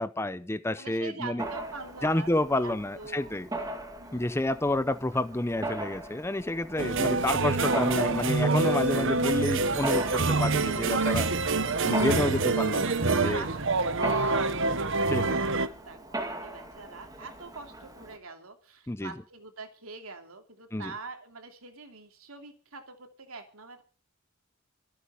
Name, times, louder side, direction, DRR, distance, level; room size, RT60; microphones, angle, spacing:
voice 1, 0.0-1.4 2.0-3.5 4.1-11.3 11.8-13.0 13.2-13.4 15.1-15.4 18.9-19.1 20.7-20.9, left 1 dB, 10° left, 14 dB, 0.6 m, -29 dB
voice 2, 0.8-3.4 4.0-4.6 13.1-15.4 15.7-23.8, right 4 dB, 75° right, 5 dB, 2.9 m, -44 dB
Mechanisms, 1.4-18.2, right 1 dB, 15° right, 2.1 m, -39 dB
sound 1, 6.8-15.7, right 3 dB, 60° right, 1.1 m, -26 dB
25.0 x 8.6 x 5.0 m, 0.38 s
head